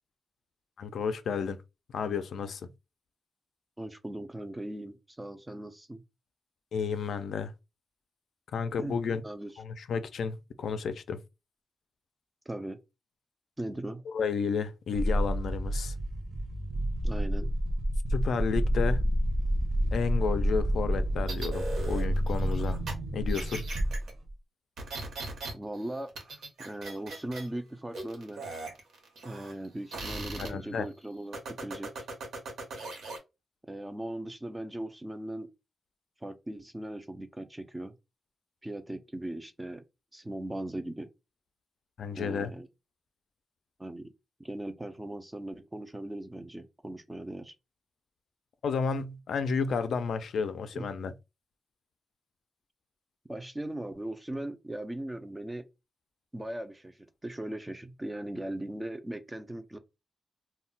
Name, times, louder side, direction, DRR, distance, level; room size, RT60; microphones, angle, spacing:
voice 1, 0.8-1.6 1.9-2.7 6.7-7.5 8.5-9.2 9.6-11.2 14.1-15.9 18.1-19.0 19.9-22.8 23.1-23.6 30.4-30.9 42.0-42.5 48.6-51.1, left 5 dB, 70° left, 0.3 m, -32 dB
voice 2, 3.8-6.0 8.8-9.5 12.5-12.8 13.6-14.0 17.0-17.5 25.5-28.4 29.2-32.1 33.7-35.5 36.2-37.9 38.6-39.8 40.1-41.1 42.2-42.7 43.8-44.1 44.4-47.5 50.7-50.9 53.3-55.7 56.3-59.8, right 1 dB, 10° right, 0.3 m, -39 dB
sound 1, 14.9-24.3, equal, 50° right, 0.6 m, -29 dB
sound 2, 21.3-22.9 23.3-24.1 24.8-25.5 25.8-27.5 27.9-29.7 29.9-30.5 31.3-33.2, right 2 dB, 80° right, 0.9 m, -39 dB
2.1 x 2.0 x 3.8 m
wide cardioid pair, 135°, 0 cm